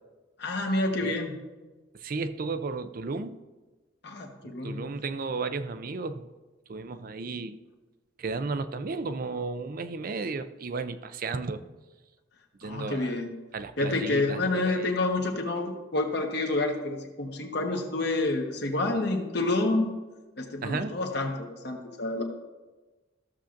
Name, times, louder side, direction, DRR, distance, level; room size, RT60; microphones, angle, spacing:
voice 1, 0.4-1.4 4.0-4.9 12.6-13.3 13.8-20.0 20.4-22.2, left 2 dB, 60° left, 3 dB, 1.3 m, -28 dB
voice 2, 1.9-3.4 4.4-6.3 6.7-7.6 8.2-11.6 12.6-13.1 13.5-14.9 20.6-21.0, right 4 dB, 45° right, 11 dB, 0.5 m, -34 dB
14.0 x 7.1 x 2.6 m, 1.2 s
head